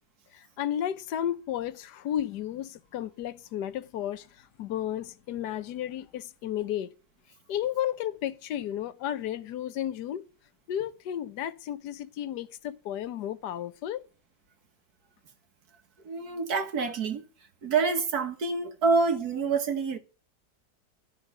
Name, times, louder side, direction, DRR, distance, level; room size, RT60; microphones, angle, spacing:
voice 1, 0.3-6.9 7.5-10.2 10.7-14.1, left 11 dB, 70° left, 1.4 m, -33 dB
voice 2, 16.1-17.2 17.6-20.0, right 4 dB, 60° right, 1.9 m, -27 dB
12.5 x 6.4 x 9.9 m
omnidirectional pair, 1.9 m